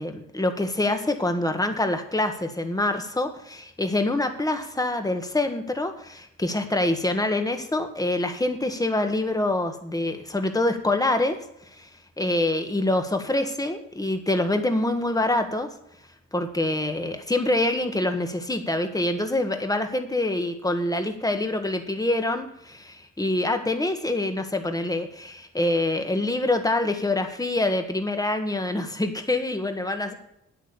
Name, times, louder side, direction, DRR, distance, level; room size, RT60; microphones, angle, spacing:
voice 1, 0.0-11.4 11.8-11.9 12.2-15.7 16.3-30.1, left 2 dB, 10° left, 6 dB, 1.6 m, -25 dB
9.3 x 8.5 x 6.9 m, 0.77 s
cardioid pair, 85°, 30 cm